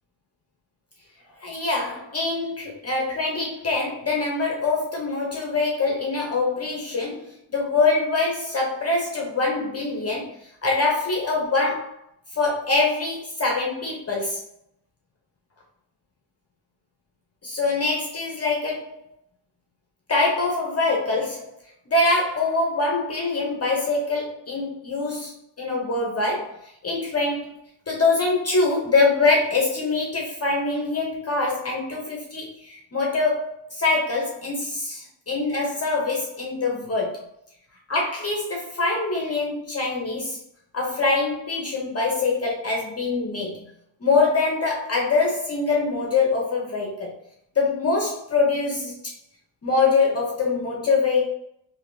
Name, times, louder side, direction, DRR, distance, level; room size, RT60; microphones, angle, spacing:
voice 1, 1.4-12.0 12.3-14.4 17.4-18.9 20.1-21.4 21.9-25.3 25.6-27.5 27.9-37.2 37.9-40.4 40.7-43.6 44.0-47.1 47.6-49.0 49.6-51.3, left 3 dB, 35° left, -1 dB, 0.6 m, -24 dB
3.4 x 2.6 x 2.5 m, 0.73 s
wide cardioid pair, 165°, 45 cm